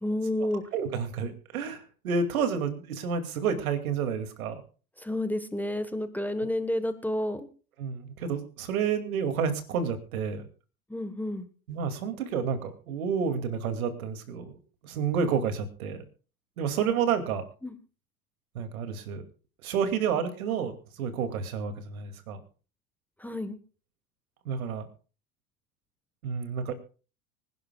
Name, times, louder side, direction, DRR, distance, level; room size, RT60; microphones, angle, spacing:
voice 1, 0.0-0.6 5.0-7.5 10.9-11.5 17.6-17.7 23.2-23.6, left 1 dB, 5° left, 9 dB, 1.2 m, -30 dB
voice 2, 0.7-4.6 7.8-10.5 11.7-14.6 14.8-16.0 16.6-17.4 18.5-19.2 19.6-20.7 21.0-22.4 24.5-24.9 26.2-26.7, right 6 dB, 75° right, 7 dB, 2.5 m, -30 dB
25.0 x 11.0 x 2.3 m, 0.36 s
hypercardioid pair, 95°, 43 cm